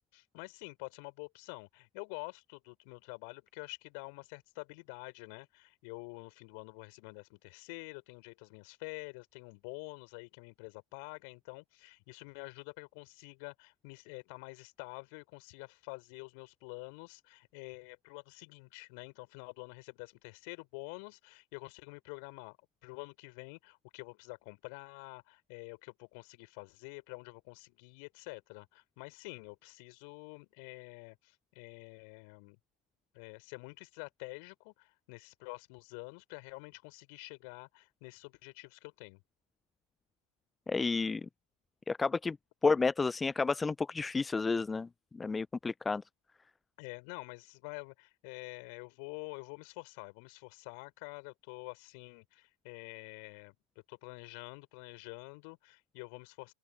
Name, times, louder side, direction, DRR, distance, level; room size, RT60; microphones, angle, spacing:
voice 1, 0.0-22.6 22.8-32.6 33.1-39.2 46.8-53.6 53.9-56.5, left 34 dB, 45° left, 6.3 m, -48 dB
voice 2, 40.7-41.2 41.9-42.4 42.6-44.9 45.1-46.0, left 4 dB, 10° left, 0.4 m, -31 dB
open air
figure-of-eight pair, 90°, 0 cm